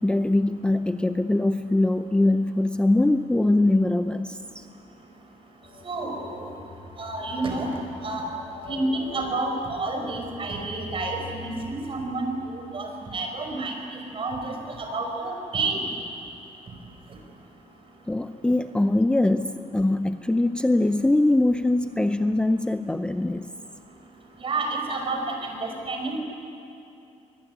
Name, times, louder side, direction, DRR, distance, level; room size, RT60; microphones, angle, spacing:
voice 1, 0.0-4.7 18.1-23.5, left 2 dB, 5° left, 9 dB, 0.6 m, -22 dB
sound 1, 5.6-12.9, left 3 dB, 50° left, 2.9 m, -44 dB
voice 2, 5.8-6.5 7.0-7.7 8.0-8.3 8.6-15.8 24.4-26.2, right 2 dB, 40° right, 3 dB, 5.4 m, -30 dB
23.5 x 21.5 x 9.9 m, 2.7 s
cardioid pair, 130°, 14 cm